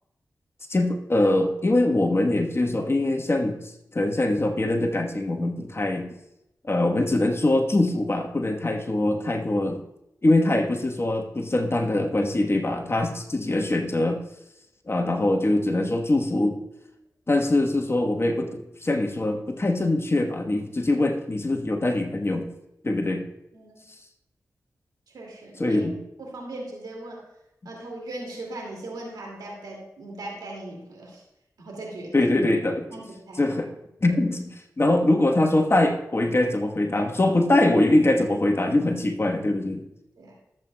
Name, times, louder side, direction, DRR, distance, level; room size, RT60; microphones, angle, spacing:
voice 1, 0.7-3.6 3.9-6.1 6.7-9.8 10.2-14.2 14.9-16.6 17.3-22.5 22.8-23.2 25.6-25.9 32.1-32.9 33.4-33.7 34.0-34.5 34.8-39.9, left 2 dB, 40° left, 2 dB, 1.3 m, -23 dB
voice 2, 23.5-23.8 25.1-25.9 26.2-27.2 27.6-31.2 31.6-32.3 32.9-33.4 40.2-40.3, right 2 dB, 90° right, -1 dB, 2.3 m, -38 dB
13.5 x 7.7 x 2.3 m, 0.86 s
cardioid pair, 45°, 7 cm